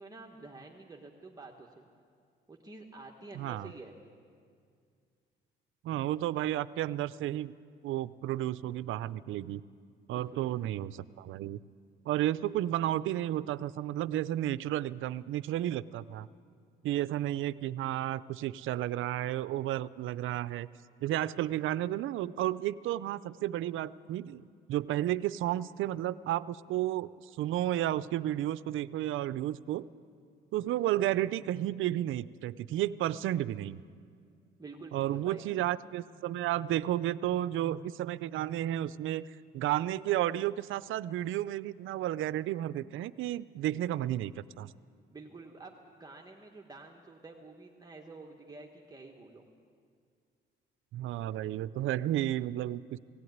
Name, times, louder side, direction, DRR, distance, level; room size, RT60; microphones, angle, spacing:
voice 1, 0.0-1.9 2.5-4.0 10.1-10.8 34.6-35.4 45.1-49.5, right 3 dB, 20° right, 0 dB, 1.5 m, -49 dB
voice 2, 3.3-3.7 5.8-7.5 7.8-9.6 10.1-11.6 12.1-16.3 16.8-20.7 21.0-29.9 30.5-33.8 34.9-39.2 39.5-44.7 50.9-53.0, right 13 dB, 80° right, 17 dB, 0.5 m, -32 dB
17.5 x 17.0 x 9.5 m, 2.2 s
cardioid pair, 105°, 20 cm